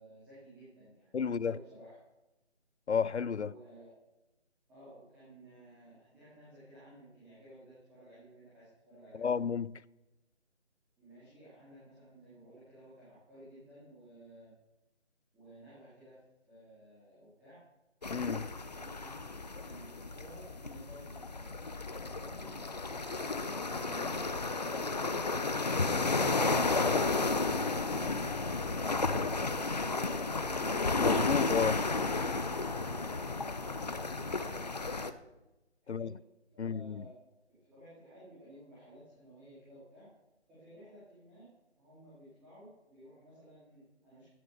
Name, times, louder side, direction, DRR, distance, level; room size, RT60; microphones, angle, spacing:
voice 1, 0.0-2.0 3.4-4.0 4.7-9.3 11.0-14.5 15.3-16.2 16.5-17.6 18.7-19.2 19.6-21.6 22.0-22.6 23.0-30.8 32.8-34.5 35.8-36.2 36.5-37.1 37.5-40.1 40.5-41.5 41.8-44.3, right 1 dB, 5° right, 2.7 m, -54 dB
voice 2, 1.1-1.6 2.9-3.5 9.2-9.8 18.1-18.5 31.0-31.7 35.9-36.1 36.6-37.0, left 6 dB, 75° left, 0.6 m, -32 dB
sound 1, 18.0-35.1, left 3 dB, 35° left, 0.8 m, -32 dB
17.0 x 7.5 x 6.7 m
figure-of-eight pair, 165°, 34 cm